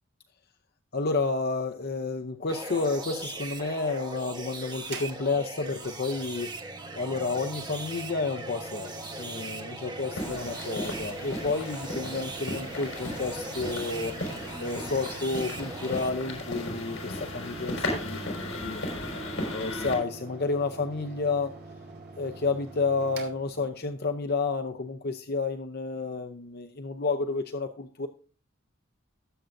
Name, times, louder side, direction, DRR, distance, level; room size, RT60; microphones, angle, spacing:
voice 1, 0.9-6.6 7.0-8.9 9.2-14.2 14.6-18.8 19.5-21.5 22.2-28.1, left 3 dB, 50° left, 6 dB, 0.7 m, -30 dB
sound 1, 2.5-16.1, right 2 dB, 20° right, 1.3 m, -40 dB
Mechanical fan, 4.8-24.2, right 3 dB, 50° right, 2.5 m, -45 dB
sound 2, 10.1-20.0, left 1 dB, 65° left, 5.5 m, -36 dB
20.0 x 7.6 x 2.6 m, 0.37 s
head